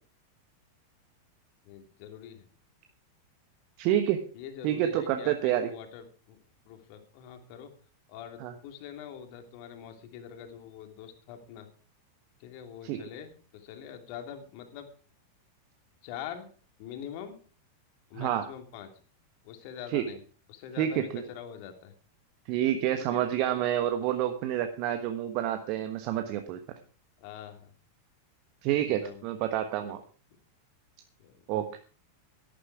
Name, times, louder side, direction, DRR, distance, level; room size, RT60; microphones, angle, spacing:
voice 1, 1.6-2.5 4.3-6.4 6.7-7.7 8.1-11.7 12.4-14.9 16.0-16.5 16.8-17.4 18.1-18.9 19.4-20.2 20.5-21.9 23.1-23.2 27.2-27.7 28.7-29.2 29.8-29.9 31.2-31.4, left 9 dB, 45° left, 6 dB, 2.9 m, -44 dB
voice 2, 3.8-4.2 4.6-5.7 8.4-8.5 12.8-13.0 18.1-18.5 19.9-20.1 20.8-21.2 22.5-26.6 28.6-30.0 31.5-31.7, right 11 dB, 45° right, 8 dB, 1.2 m, -28 dB
13.5 x 11.5 x 4.8 m, 0.40 s
figure-of-eight pair, 90°, 0 cm